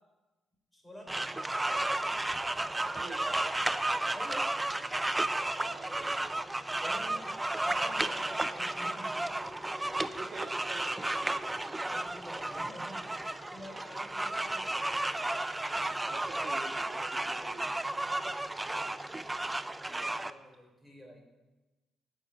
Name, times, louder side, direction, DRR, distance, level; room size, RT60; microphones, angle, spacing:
voice 1, 0.7-1.8 4.1-4.5 6.7-7.3 7.6-9.1 11.6-14.9 18.6-19.0 19.9-21.2, equal, 15° left, 1 dB, 4.0 m, -49 dB
sound 1, 1.1-20.3, right 2 dB, 15° right, 0.6 m, -33 dB
voice 2, 2.7-3.4 5.7-6.3 6.7-7.4 10.2-11.2 16.1-17.7, right 3 dB, 45° right, 1 dB, 2.5 m, -47 dB
12.5 x 6.6 x 9.0 m, 1.1 s
cardioid pair, 90°, 0 cm